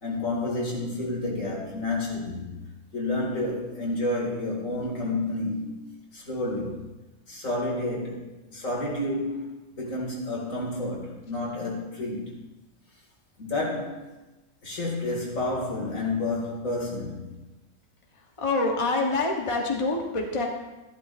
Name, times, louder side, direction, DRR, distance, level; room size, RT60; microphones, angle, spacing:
voice 1, 0.0-2.6 2.9-5.7 6.1-6.8 7.3-12.3 13.4-14.1 14.6-17.3, left 2 dB, 75° left, -2 dB, 2.7 m, -30 dB
voice 2, 18.4-20.5, left 3 dB, 25° left, 0 dB, 1.1 m, -26 dB
13.0 x 11.5 x 2.6 m, 1.0 s
omnidirectional pair, 1.4 m